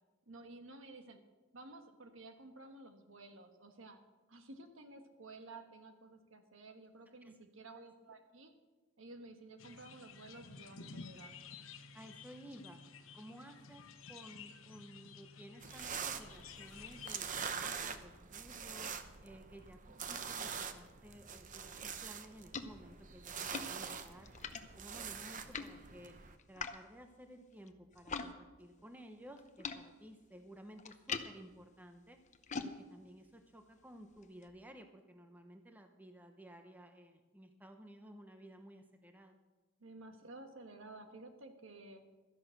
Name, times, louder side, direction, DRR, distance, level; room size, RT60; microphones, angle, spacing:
voice 1, 0.3-1.2 1.5-4.0 4.3-8.5 9.0-11.4 39.8-42.0, right 2 dB, 75° right, 6 dB, 1.5 m, -53 dB
sound 1, 9.6-17.2, left 5 dB, 85° left, 1.0 m, -53 dB
voice 2, 11.9-12.8 13.1-18.9 19.2-24.3 24.7-26.2 26.5-32.2 32.5-39.4, equal, 10° right, 6 dB, 0.8 m, -55 dB
sound 2, 15.6-26.3, right 6 dB, 40° right, 0.8 m, -44 dB
sound 3, 21.9-28.3 28.6-34.5, left 5 dB, 35° left, 0.7 m, -47 dB
13.0 x 11.0 x 6.5 m, 1.2 s
head